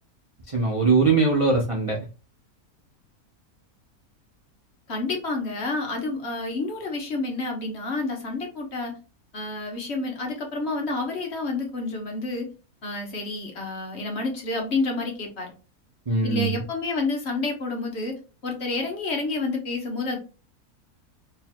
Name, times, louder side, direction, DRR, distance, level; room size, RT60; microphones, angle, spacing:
voice 1, 0.5-2.1 16.1-16.6, right 4 dB, 50° right, -1 dB, 0.4 m, -21 dB
voice 2, 4.9-9.0 9.3-12.5 12.8-15.5 16.2-18.1 18.4-20.2, left 3 dB, 45° left, 2 dB, 1.2 m, -29 dB
4.4 x 3.2 x 2.2 m, 0.33 s
omnidirectional pair, 1.7 m